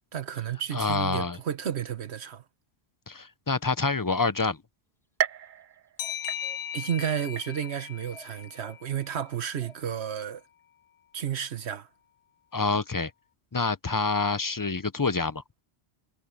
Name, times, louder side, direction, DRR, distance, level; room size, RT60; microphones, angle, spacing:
voice 1, 0.1-2.4 6.7-10.4 11.1-11.9, right 9 dB, 90° right, 1.3 m, -32 dB
voice 2, 0.7-1.4 3.1-4.6 12.5-13.1 13.5-15.4, left 4 dB, 25° left, 0.5 m, -27 dB
sound 1, 5.2-6.9 7.4-7.9 8.4-8.5 9.5-9.6, right 9 dB, 55° right, 0.7 m, -34 dB
sound 2, 6.0-9.3, left 10 dB, 65° left, 0.7 m, -38 dB
sound 3, 6.0-6.6 8.1-8.8 9.6-10.3, left 1 dB, ahead, 1.3 m, -51 dB
omnidirectional pair, 1.1 m